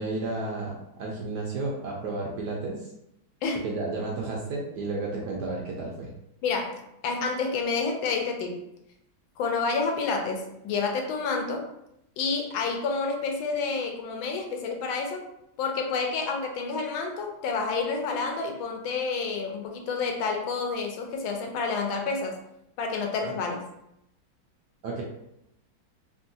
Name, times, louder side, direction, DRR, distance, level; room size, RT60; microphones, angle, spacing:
voice 1, 0.0-2.9 3.6-6.1 23.2-23.3 24.8-25.0, right 3 dB, 75° right, -2 dB, 1.0 m, -32 dB
voice 2, 6.4-8.6 9.4-11.7 12.2-15.2 15.6-22.4 22.8-23.6, left 4 dB, 80° left, 3 dB, 1.4 m, -29 dB
3.6 x 2.2 x 2.6 m, 0.81 s
omnidirectional pair, 2.2 m